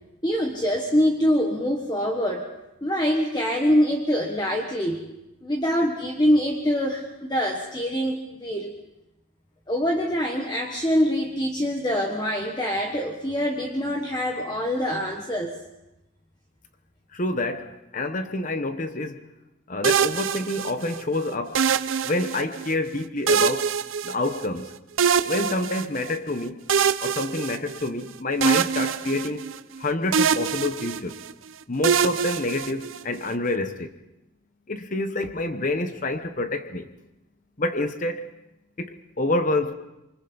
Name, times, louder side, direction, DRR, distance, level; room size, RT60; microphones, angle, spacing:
voice 1, 0.2-2.5 2.8-5.0 5.4-8.7 9.7-15.5, equal, 20° left, 1 dB, 1.3 m, -24 dB
voice 2, 17.1-19.2 19.7-21.6 22.0-23.7 24.0-24.7 25.2-26.6 27.0-29.5 29.8-31.2 31.7-33.9 34.7-36.9 37.6-38.3 38.8-39.7, left 2 dB, 40° left, 8 dB, 1.0 m, -27 dB
sound 1, 19.8-21.0 21.5-22.7 23.3-24.6 25.0-26.2 26.7-28.0 28.4-29.8 30.1-31.3 31.8-33.2, right 7 dB, 70° right, 0.7 m, -24 dB
27.0 x 24.5 x 4.0 m, 0.94 s
head